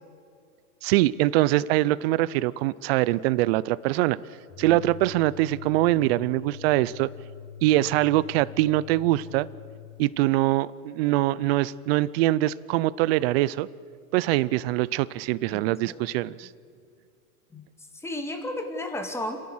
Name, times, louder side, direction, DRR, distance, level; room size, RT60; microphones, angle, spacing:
voice 1, 0.8-4.2 4.6-7.1 7.6-9.5 10.0-13.7 14.1-16.5, right 16 dB, 40° right, 19 dB, 0.6 m, -23 dB
sound 1, 4.5-10.1, left 9 dB, 25° left, 0.8 m, -43 dB
voice 2, 15.5-16.1 17.5-17.6 17.9-19.4, left 1 dB, 5° left, 5 dB, 2.1 m, -34 dB
29.5 x 11.0 x 7.8 m, 2.2 s
hypercardioid pair, 135°, 46 cm